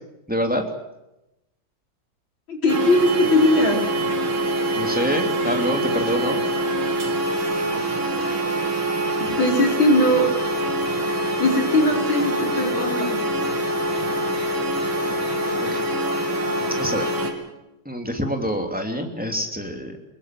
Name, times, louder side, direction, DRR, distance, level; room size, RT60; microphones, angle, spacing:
voice 1, 0.3-0.6 4.7-6.4 15.6-15.8 16.8-17.1 17.8-20.1, equal, 5° right, 3 dB, 3.0 m, -26 dB
voice 2, 2.5-3.8 9.4-10.3 11.4-13.2, left 1 dB, 70° left, 2 dB, 5.2 m, -19 dB
sound 1, 2.7-17.3, right 1 dB, 85° right, 4.1 m, -24 dB
24.0 x 21.0 x 7.7 m, 0.91 s
omnidirectional pair, 2.2 m